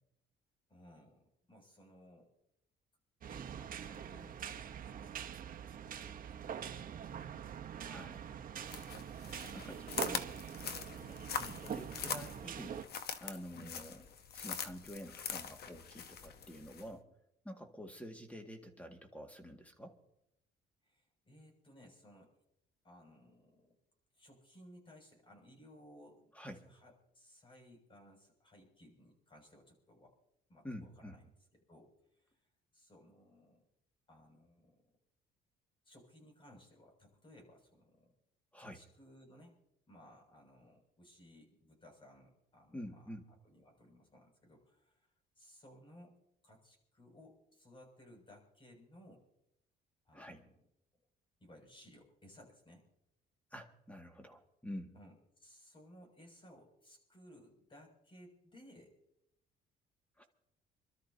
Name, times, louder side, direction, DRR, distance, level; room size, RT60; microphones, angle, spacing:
voice 1, 0.7-2.3 3.2-5.3 5.8-7.0 9.5-9.8 11.4-11.7 13.5-13.8 20.8-22.3 22.8-23.8 24.1-26.3 26.6-30.2 30.5-32.4 32.7-33.6 34.1-34.9 35.9-38.1 38.6-39.6 39.9-43.1 43.4-45.1 45.4-46.2 46.4-49.3 50.1-50.5 51.4-52.8 54.9-59.0, left 1 dB, 25° left, 1 dB, 6.8 m, -60 dB
sound 1, 3.2-12.8, right 8 dB, 45° right, 1.0 m, -44 dB
voice 2, 7.8-8.3 9.5-10.3 10.6-11.2 11.6-12.8 13.2-14.0 14.3-17.1 17.4-20.0 26.3-26.7 30.6-31.2 38.5-38.8 42.7-43.2 50.1-50.4 53.5-54.9 60.2-60.3, equal, 5° left, 4 dB, 2.1 m, -48 dB
sound 2, 8.6-16.9, left 7 dB, 55° left, 1.1 m, -43 dB
28.0 x 13.0 x 2.8 m, 0.80 s
cardioid pair, 110°, 19 cm